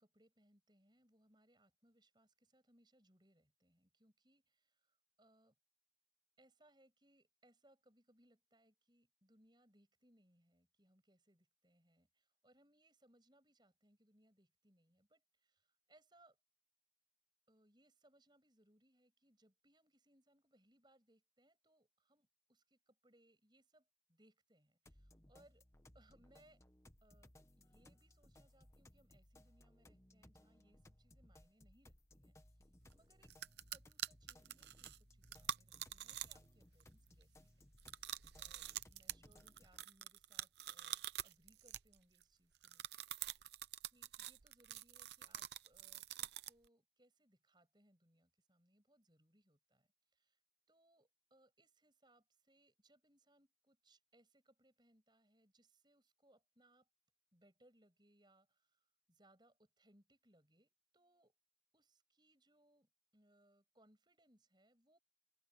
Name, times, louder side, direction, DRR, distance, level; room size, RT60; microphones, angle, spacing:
voice 1, 0.0-5.5 6.4-16.4 17.5-25.6 25.9-26.6 27.0-32.6 32.9-33.4 33.7-42.8 43.9-50.4 50.7-56.9 57.3-61.3 61.7-65.0, right 1 dB, 25° right, 7.2 m, -73 dB
sound 1, 24.9-39.9, left 1 dB, 15° left, 1.2 m, -65 dB
sound 2, 32.9-33.0 33.3-36.5 36.8-37.2 37.8-42.2 42.6-46.7, right 11 dB, 75° right, 0.8 m, -46 dB
open air
head